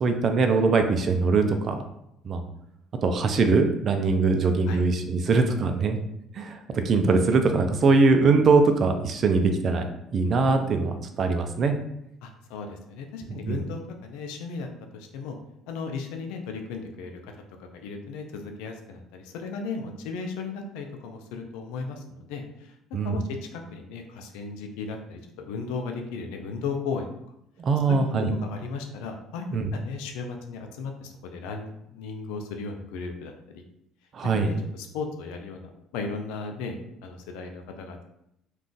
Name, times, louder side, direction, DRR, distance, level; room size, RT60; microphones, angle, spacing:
voice 1, 0.0-1.8 2.2-2.4 3.0-6.0 6.3-6.6 6.8-9.8 10.1-11.7 13.5-13.6 22.9-23.2 27.6-28.3 29.5-29.7 34.1-34.5, right 4 dB, 50° right, 6 dB, 0.4 m, -22 dB
voice 2, 12.2-15.4 15.7-17.2 17.6-27.1 27.9-33.6 34.4-36.8 37.0-38.0, left 4 dB, 85° left, 4 dB, 0.4 m, -36 dB
2.4 x 2.3 x 3.7 m, 0.80 s
supercardioid pair, 90°, 0 cm